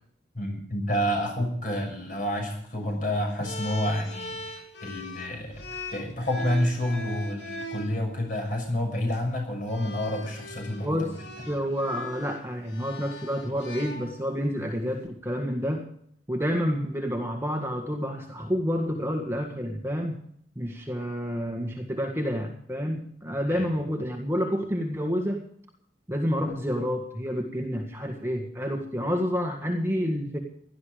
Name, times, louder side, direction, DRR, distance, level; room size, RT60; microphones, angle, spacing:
voice 1, 0.3-5.6 5.9-11.1 23.5-23.6, left 1 dB, 45° left, 2 dB, 6.3 m, -29 dB
sound 1, 3.4-7.9 8.9-9.2 9.7-14.5, left 1 dB, 70° left, 2.8 m, -40 dB
voice 2, 10.8-11.2 11.5-15.9 16.3-20.2 20.6-25.4 26.1-30.4, equal, 15° right, 2 dB, 1.7 m, -29 dB
17.5 x 12.0 x 5.1 m, 0.65 s
head